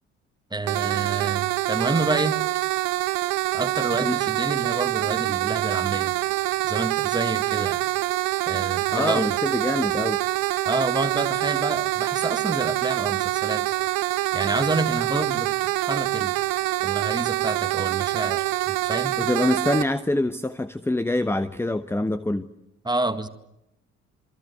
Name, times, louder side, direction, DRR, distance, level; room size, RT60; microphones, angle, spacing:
voice 1, 0.5-2.4 3.5-6.2 6.6-7.8 8.5-9.4 10.7-13.7 14.3-15.5 15.8-16.3 16.8-19.2 22.8-23.3, right 2 dB, 10° right, 10 dB, 2.0 m, -28 dB
sound 1, 0.7-19.8, right 19 dB, 60° right, 1.4 m, -25 dB
voice 2, 8.9-10.2 19.2-22.5, left 2 dB, 5° left, 14 dB, 1.0 m, -25 dB
27.0 x 24.5 x 8.1 m, 0.87 s
figure-of-eight pair, 45°, 38 cm